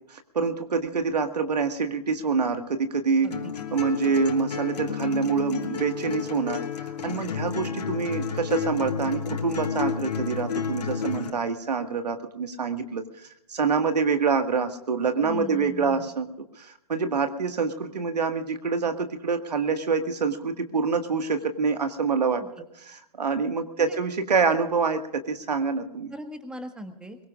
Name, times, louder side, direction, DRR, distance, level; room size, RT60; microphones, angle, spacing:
voice 1, 0.1-3.4 3.7-16.3 16.6-22.4 22.8-26.1, right 5 dB, 90° right, 6 dB, 1.8 m, -26 dB
sound 1, 3.3-11.3, left 6 dB, 85° left, 3.0 m, -31 dB
voice 2, 15.2-16.0 22.4-22.5 23.8-24.0 26.1-27.2, equal, 5° right, 6 dB, 1.6 m, -39 dB
23.0 x 21.5 x 2.5 m, 0.80 s
hypercardioid pair, 145°, 20 cm